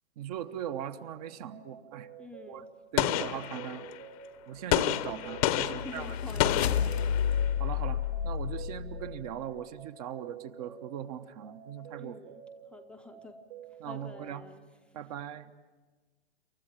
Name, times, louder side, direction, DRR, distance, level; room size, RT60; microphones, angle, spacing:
voice 1, 0.2-2.1 2.5-2.6 2.9-3.9 4.5-6.2 7.6-12.1 13.8-14.5 14.9-15.5, right 10 dB, 35° right, 11 dB, 1.0 m, -40 dB
sound 1, 1.1-14.3, right 8 dB, 60° right, 3.2 m, -50 dB
voice 2, 2.2-2.7 5.7-7.0 11.9-12.4 12.7-13.4 13.8-14.7, left 2 dB, 5° left, 3 dB, 0.7 m, -47 dB
Gunshot gunfire, 3.0-4.0 4.7-7.5, left 13 dB, 35° left, 0.9 m, -30 dB
sound 2, 5.1-9.4, left 8 dB, 75° left, 0.9 m, -31 dB
28.0 x 14.0 x 8.8 m, 1.4 s
hypercardioid pair, 130°, 32 cm